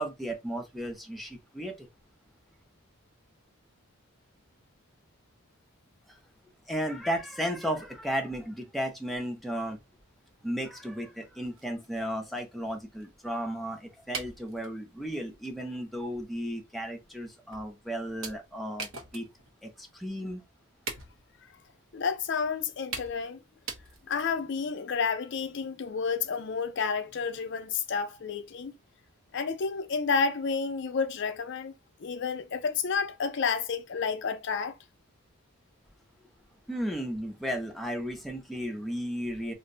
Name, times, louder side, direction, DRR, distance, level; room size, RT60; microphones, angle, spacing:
voice 1, 0.0-1.9 6.7-9.8 10.4-19.3 19.6-20.4 36.7-39.5, equal, ahead, 0.5 m, -34 dB
sound 1, 11.5-13.4 14.1-14.8 15.4-15.6 16.0-16.1 16.8-16.9 17.5-17.8 18.2-19.6 19.9-20.0 20.3-20.4 20.9-21.4 22.3-22.4 22.9-23.3 23.7-24.5, right 4 dB, 65° right, 0.7 m, -41 dB
voice 2, 21.9-23.4 24.1-28.7 29.3-31.7 32.0-34.7, left 5 dB, 55° left, 0.4 m, -30 dB
2.6 x 2.1 x 3.7 m
head